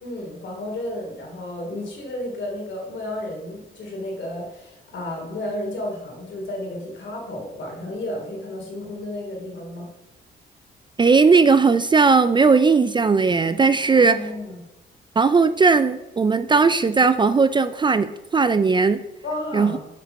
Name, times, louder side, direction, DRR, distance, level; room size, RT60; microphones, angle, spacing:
voice 1, 0.0-9.9 13.9-14.6 19.2-19.8, left 1 dB, 70° left, 0 dB, 3.0 m, -32 dB
voice 2, 11.0-14.3 15.2-19.0 19.5-19.8, right 4 dB, 25° right, 12 dB, 0.4 m, -17 dB
7.7 x 5.0 x 5.5 m, 0.98 s
cardioid pair, 90°, 20 cm